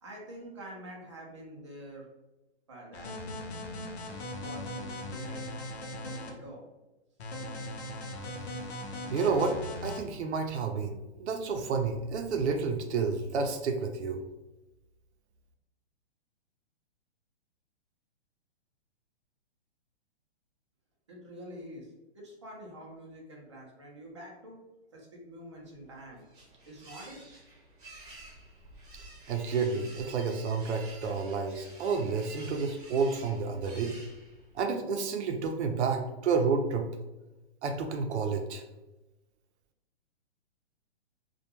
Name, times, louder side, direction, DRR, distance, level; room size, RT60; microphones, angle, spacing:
voice 1, 0.0-2.1 2.7-3.1 4.4-5.6 6.0-6.7 21.1-24.6 24.9-26.2 26.7-27.2, right 1 dB, 30° right, -3 dB, 0.4 m, -47 dB
sound 1, 2.9-6.3 7.2-10.0, left 1 dB, 70° left, 0.7 m, -39 dB
voice 2, 9.1-9.6 9.8-14.2 29.3-33.9 34.5-36.9 37.6-38.6, right 5 dB, 85° right, 4 dB, 0.5 m, -30 dB
sound 2, 25.7-34.6, right 2 dB, 50° right, 0.8 m, -51 dB
2.2 x 2.1 x 2.8 m, 1.0 s
hypercardioid pair, 175°, 33 cm